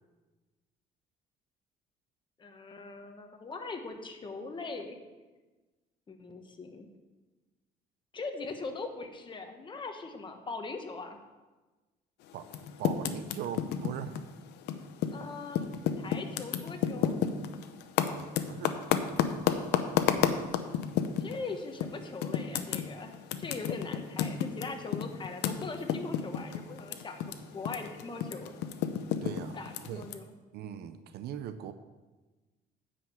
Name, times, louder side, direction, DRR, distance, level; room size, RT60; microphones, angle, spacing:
voice 1, 2.4-5.0 6.1-6.9 8.1-11.2 15.1-15.7 16.0-17.1 21.2-23.1 23.4-28.5 29.5-30.3, left 3 dB, 30° left, 5 dB, 1.2 m, -41 dB
Typing, 12.4-15.2 15.5-21.4 21.8-21.9 22.2-27.3 27.6-30.1, left 9 dB, 85° left, 0.7 m, -30 dB
voice 2, 12.8-14.2 18.1-18.8 29.2-29.6 29.9-30.1 30.5-31.7, right 9 dB, 75° right, 10 dB, 0.6 m, -40 dB
9.6 x 5.1 x 7.0 m, 1.2 s
cardioid pair, 110°, 17 cm